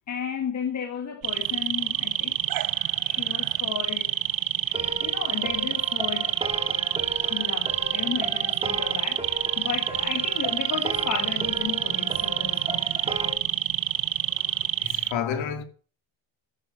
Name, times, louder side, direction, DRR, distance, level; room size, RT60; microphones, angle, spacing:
voice 1, 0.1-2.3 3.0-4.1 4.7-6.3 7.2-13.1, left 8 dB, 35° left, 1.4 m, -34 dB
sound 1, 1.2-15.1, right 13 dB, 50° right, 0.6 m, -27 dB
sound 2, 4.7-13.3, right 1 dB, 10° right, 2.1 m, -36 dB
voice 2, 14.8-15.6, left 8 dB, 70° left, 2.4 m, -30 dB
10.5 x 9.6 x 5.7 m
cardioid pair, 175°, 47 cm